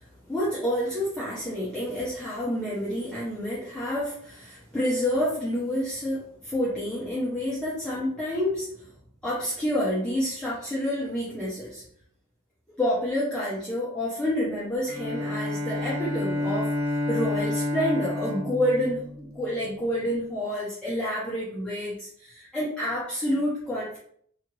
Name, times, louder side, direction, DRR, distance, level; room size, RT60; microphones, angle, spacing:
voice 1, 0.0-8.9 9.2-11.8 12.7-24.0, equal, 5° left, -9 dB, 0.7 m, -29 dB
Bowed string instrument, 14.9-19.7, left 2 dB, 90° right, 0.7 m, -30 dB
2.8 x 2.5 x 2.8 m, 0.63 s
head